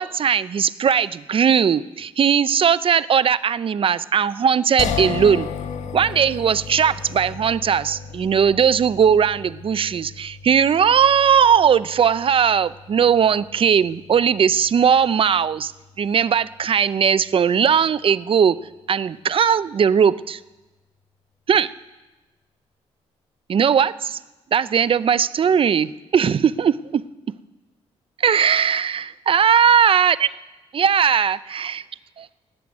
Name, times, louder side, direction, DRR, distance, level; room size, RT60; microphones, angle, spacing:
voice 1, 0.0-5.5 5.9-15.7 16.0-18.6 18.9-20.4 21.5-21.7 23.5-24.2 24.5-27.0 28.2-30.3 30.7-31.8 32.2-32.3, right 7 dB, 50° right, 17 dB, 0.6 m, -18 dB
sound 1, 4.8-17.9, left 6 dB, 80° left, 1.4 m, -35 dB
17.5 x 7.8 x 9.7 m, 1.1 s
cardioid pair, 75°, 12 cm